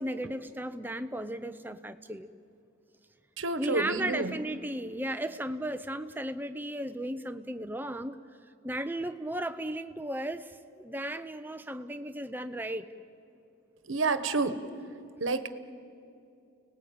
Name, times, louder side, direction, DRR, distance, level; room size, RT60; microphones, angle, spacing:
voice 1, 0.0-2.3 3.6-8.2 8.6-12.9, right 1 dB, 10° right, 9 dB, 0.7 m, -35 dB
voice 2, 3.4-4.4 13.8-14.6 15.2-15.5, right 3 dB, 85° right, 11 dB, 1.2 m, -29 dB
29.5 x 19.5 x 8.7 m, 2.6 s
head